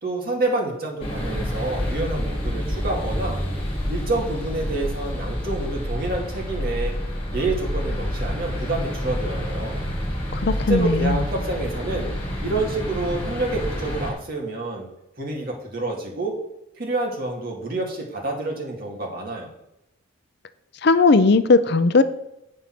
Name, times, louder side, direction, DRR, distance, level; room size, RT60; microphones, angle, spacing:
voice 1, 0.0-3.4 3.9-7.0 7.3-9.8 10.7-12.1 12.4-14.9 15.2-16.3 16.8-19.5, right 2 dB, 45° right, -1 dB, 2.2 m, -28 dB
sound 1, 1.0-14.1, equal, 30° left, 2.6 m, -28 dB
voice 2, 10.3-11.2 20.8-22.0, left 3 dB, 55° left, 13 dB, 0.5 m, -17 dB
8.5 x 5.4 x 5.9 m, 0.86 s
head